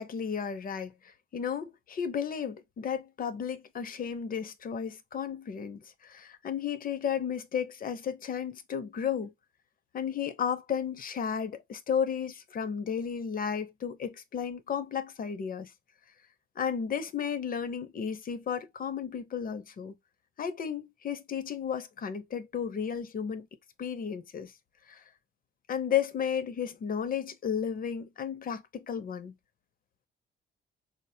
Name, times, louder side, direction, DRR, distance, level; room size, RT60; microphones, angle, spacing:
voice 1, 0.0-9.3 9.9-15.7 16.6-20.0 20.4-23.5 23.8-24.5 24.9-25.0 25.7-29.4, left 7 dB, 45° left, 0.7 m, -33 dB
4.2 x 2.2 x 2.7 m
cardioid pair, 90°, 20 cm